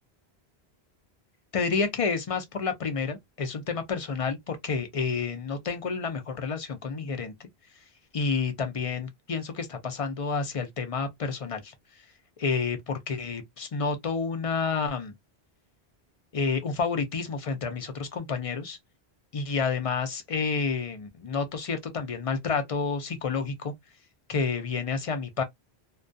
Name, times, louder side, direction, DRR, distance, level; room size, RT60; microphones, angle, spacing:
voice 1, 1.5-7.5 8.1-11.7 12.4-15.1 16.3-18.8 19.3-23.7 24.3-25.4, left 5 dB, 45° left, 0.4 m, -29 dB
2.2 x 2.2 x 2.5 m
omnidirectional pair, 1.1 m